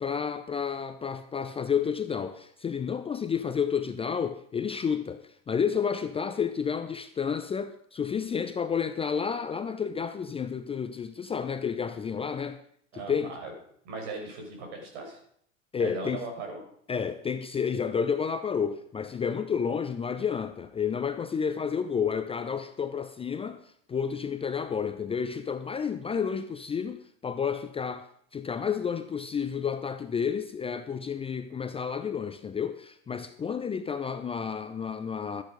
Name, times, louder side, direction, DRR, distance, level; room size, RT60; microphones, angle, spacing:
voice 1, 0.0-12.6 13.1-13.3 15.7-16.2 16.9-23.6 23.9-28.1 28.3-35.4, left 6 dB, 15° left, 0.6 m, -30 dB
voice 2, 12.9-13.5 13.8-15.2 15.8-16.6, right 3 dB, 55° right, 5.5 m, -38 dB
13.5 x 10.5 x 5.0 m
figure-of-eight pair, 85°, 38 cm